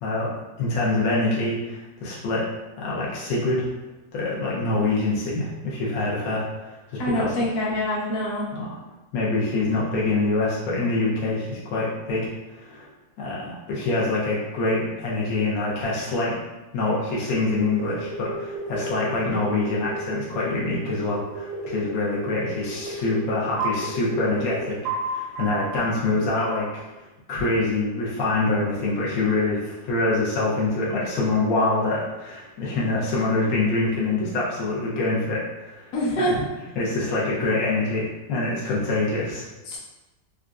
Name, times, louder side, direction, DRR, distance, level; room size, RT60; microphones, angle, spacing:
voice 1, 0.0-2.5 2.8-3.7 4.1-7.5 8.5-8.8 9.1-12.9 13.2-16.3 16.7-35.4 35.7-36.4 36.8-39.5, left 2 dB, 85° left, -6 dB, 1.5 m, -25 dB
voice 2, 7.0-8.5 35.9-36.3 39.7-39.8, equal, 60° left, -6 dB, 1.3 m, -25 dB
sound 1, 17.5-25.8 26.4-26.8, right 2 dB, 75° right, 0.9 m, -32 dB
4.2 x 2.5 x 2.4 m, 1.1 s
omnidirectional pair, 2.1 m